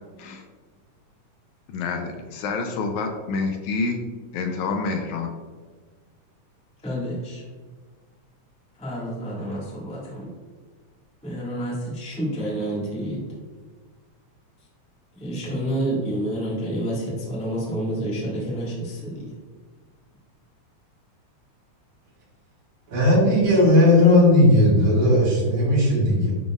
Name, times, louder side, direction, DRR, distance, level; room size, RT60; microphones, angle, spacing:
voice 1, 1.7-4.0 4.3-5.3, left 4 dB, 80° left, 4 dB, 1.9 m, -27 dB
voice 2, 6.8-7.4 8.8-10.3 11.2-13.2 15.1-19.3, right 1 dB, 5° left, -6 dB, 0.5 m, -29 dB
voice 3, 22.9-26.3, left 1 dB, 70° right, -7 dB, 3.3 m, -17 dB
10.5 x 3.9 x 2.4 m, 1.5 s
omnidirectional pair, 3.5 m